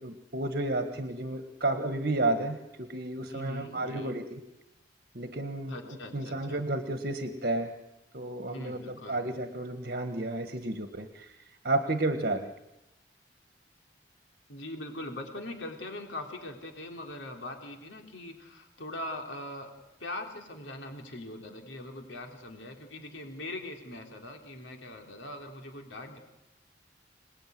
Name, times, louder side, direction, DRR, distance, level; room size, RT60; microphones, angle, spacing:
voice 1, 0.0-4.4 5.1-7.7 8.1-12.5, right 2 dB, 55° right, 6 dB, 1.7 m, -32 dB
voice 2, 3.3-4.2 5.7-6.6 8.5-9.2 14.5-19.7 20.0-26.2, left 1 dB, 85° left, 3 dB, 3.4 m, -41 dB
27.5 x 20.0 x 9.5 m, 0.92 s
head